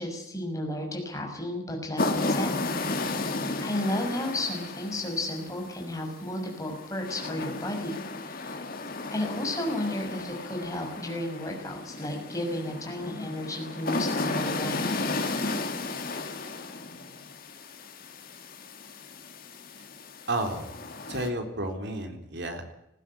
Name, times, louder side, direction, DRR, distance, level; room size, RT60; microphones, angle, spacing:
voice 1, 0.0-8.6 9.1-15.0, left 1 dB, 15° left, 1 dB, 6.2 m, -33 dB
sound 1, 2.0-21.3, left 2 dB, 45° left, 2.4 m, -34 dB
voice 2, 20.3-22.6, right 1 dB, 55° right, 5 dB, 3.9 m, -32 dB
19.5 x 16.0 x 10.0 m, 0.84 s
head